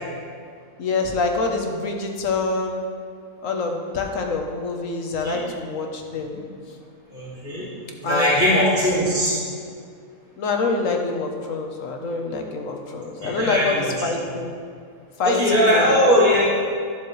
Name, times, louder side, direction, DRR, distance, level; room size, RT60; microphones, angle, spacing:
voice 1, 0.8-2.9 3.4-6.4 8.0-8.3 9.0-9.1 10.4-14.5 15.2-15.8, left 3 dB, 70° left, 2 dB, 1.4 m, -26 dB
voice 2, 7.1-7.7 8.0-9.4 13.2-14.1 15.2-16.4, equal, 10° right, -11 dB, 2.6 m, -20 dB
13.5 x 7.3 x 3.2 m, 2.2 s
omnidirectional pair, 1.5 m